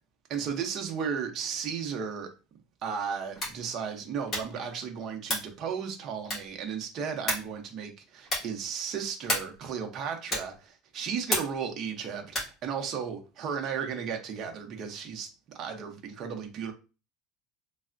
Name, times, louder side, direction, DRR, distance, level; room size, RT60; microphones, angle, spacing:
voice 1, 0.3-2.3 2.8-16.7, right 7 dB, 40° right, 0.6 m, -35 dB
sound 1, 3.3-3.7 4.2-4.6 5.2-5.6 6.2-6.6 7.3-7.6 8.2-8.6 9.2-9.6 10.3-10.6 11.3-11.7 12.3-12.6, left 1 dB, 25° left, 1.4 m, -32 dB
3.2 x 2.0 x 2.5 m
cardioid pair, 160°, 0 cm